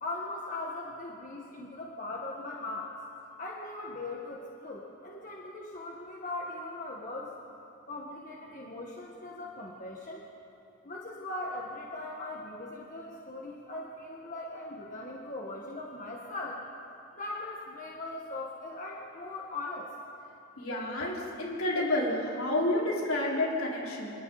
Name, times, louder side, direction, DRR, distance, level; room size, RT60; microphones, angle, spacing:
voice 1, 0.0-3.0 3.4-7.3 7.9-10.2 10.8-16.6 17.1-19.9, left 2 dB, 35° left, -2 dB, 1.8 m, -39 dB
voice 2, 20.6-24.1, left 1 dB, 70° left, -4 dB, 5.2 m, -30 dB
29.5 x 26.5 x 4.3 m, 2.8 s
head